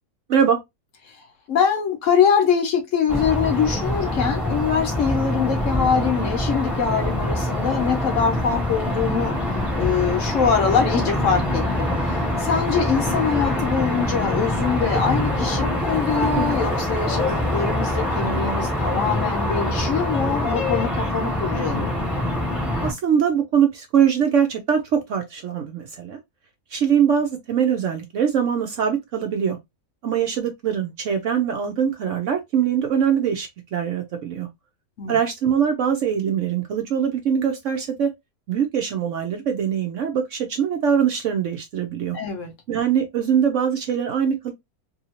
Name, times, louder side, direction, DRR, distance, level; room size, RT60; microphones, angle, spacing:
voice 1, 1.5-9.3 9.8-21.9 35.0-35.2 42.1-42.5, left 6 dB, 65° left, 0.9 m, -23 dB
sound 1, 3.1-22.9, left 1 dB, ahead, 0.8 m, -24 dB
voice 2, 22.8-26.2 26.7-29.6 30.0-34.5 35.1-38.1 38.5-42.2 42.7-44.5, right 8 dB, 65° right, 0.8 m, -22 dB
2.7 x 2.7 x 2.8 m
omnidirectional pair, 1.7 m